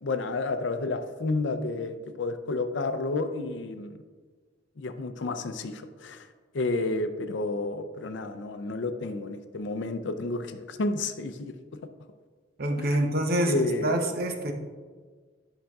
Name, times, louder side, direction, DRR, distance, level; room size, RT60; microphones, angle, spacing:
voice 1, 0.0-4.0 4.8-6.3 6.5-11.5 12.8-13.9, left 2 dB, 65° left, 9 dB, 0.5 m, -31 dB
voice 2, 12.6-14.5, right 1 dB, 55° right, 5 dB, 0.7 m, -26 dB
10.0 x 5.7 x 2.4 m, 1.5 s
head